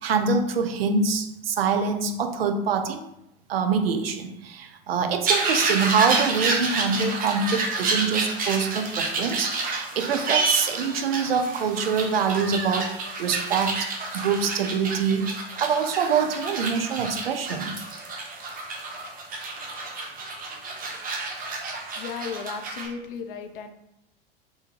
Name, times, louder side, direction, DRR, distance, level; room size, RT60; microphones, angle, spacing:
voice 1, 0.0-3.1 3.5-13.9 14.1-15.3 15.6-17.7, right 5 dB, 80° right, 8 dB, 0.5 m, -25 dB
sound 1, 5.2-22.9, right 3 dB, 30° right, 0.7 m, -29 dB
voice 2, 22.0-23.7, left 6 dB, 65° left, 7 dB, 0.5 m, -35 dB
3.5 x 2.7 x 2.9 m, 0.82 s
figure-of-eight pair, 75°, 29 cm